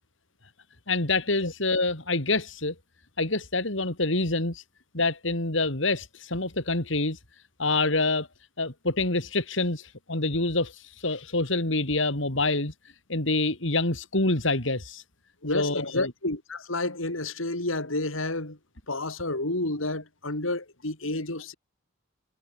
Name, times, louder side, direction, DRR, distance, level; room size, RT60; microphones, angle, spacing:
voice 1, 0.9-2.7 3.2-4.6 4.9-7.2 7.6-8.3 8.6-12.7 13.1-15.0 15.5-16.1, left 2 dB, 65° left, 3.7 m, -26 dB
voice 2, 15.4-18.6 18.9-21.5, left 2 dB, 85° left, 4.9 m, -30 dB
head